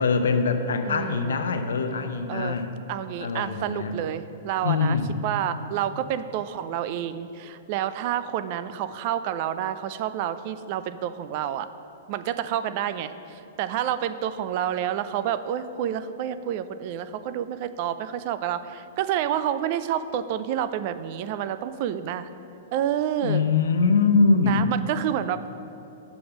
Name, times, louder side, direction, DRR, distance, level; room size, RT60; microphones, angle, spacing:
voice 1, 0.0-2.7 3.2-4.0 4.6-5.1 23.2-24.7, left 4 dB, 90° left, 7 dB, 0.6 m, -23 dB
voice 2, 0.9-1.3 2.3-2.6 2.9-5.0 5.2-11.7 12.1-22.3 22.7-23.4 24.4-25.5, right 10 dB, 45° right, 12 dB, 0.3 m, -29 dB
7.0 x 5.2 x 5.9 m, 2.9 s
hypercardioid pair, 150°, 0 cm